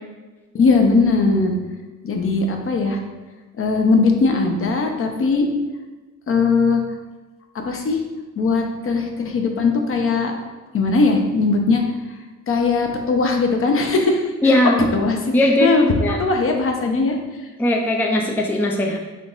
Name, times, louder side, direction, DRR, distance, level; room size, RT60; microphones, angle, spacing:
voice 1, 0.5-1.5 2.0-3.0 3.6-5.5 6.3-6.8 7.5-8.0 8.4-10.3 10.7-11.8 12.5-14.5 14.9-15.3 15.6-15.9 16.2-17.2, left 4 dB, 45° left, 3 dB, 0.7 m, -19 dB
voice 2, 14.4-14.8 15.3-15.7 16.0-16.2 17.6-19.0, left 1 dB, 5° left, 1 dB, 0.4 m, -18 dB
3.4 x 2.9 x 3.9 m, 1.2 s
cardioid pair, 90°, 30 cm